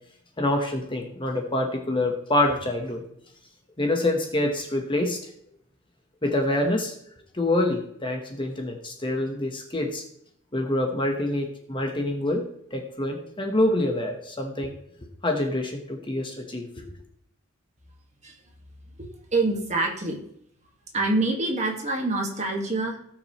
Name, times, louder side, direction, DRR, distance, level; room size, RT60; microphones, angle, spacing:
voice 1, 0.4-3.0 3.8-5.3 6.2-6.9 7.3-10.0 10.5-12.4 12.7-14.7 15.2-16.8, left 1 dB, 25° left, 3 dB, 1.3 m, -26 dB
voice 2, 19.0-20.2 20.9-23.0, right 2 dB, 35° right, 1 dB, 1.9 m, -26 dB
18.0 x 6.2 x 3.2 m, 0.70 s
head